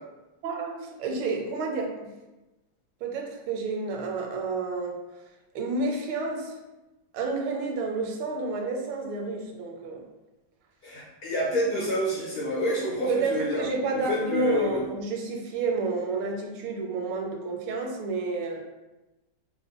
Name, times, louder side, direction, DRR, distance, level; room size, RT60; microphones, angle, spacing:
voice 1, 0.4-2.1 3.0-5.0 5.5-6.5 7.1-10.0 13.0-18.6, right 3 dB, 80° right, 1 dB, 1.4 m, -30 dB
voice 2, 10.8-13.7 13.9-14.8, left 1 dB, 60° left, -7 dB, 1.0 m, -28 dB
3.4 x 2.0 x 3.5 m, 1.1 s
omnidirectional pair, 2.3 m